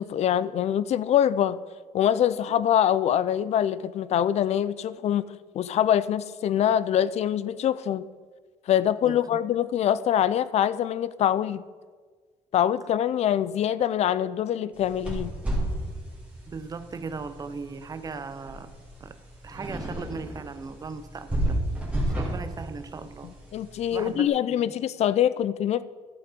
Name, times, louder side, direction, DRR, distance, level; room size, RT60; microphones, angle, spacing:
voice 1, 0.0-1.6 1.9-5.2 5.5-8.1 8.7-11.6 12.5-15.3 23.2-25.8, left 10 dB, 60° left, 17 dB, 0.4 m, -24 dB
voice 2, 9.0-9.4 16.5-18.7 19.0-19.2 19.4-21.6 22.2-23.3 23.9-24.3 24.7-24.8, right 4 dB, 30° right, 11 dB, 0.6 m, -38 dB
sound 1, 14.7-24.1, right 1 dB, 10° right, 2.6 m, -33 dB
11.5 x 7.0 x 5.1 m, 1.5 s
cardioid pair, 145°, 13 cm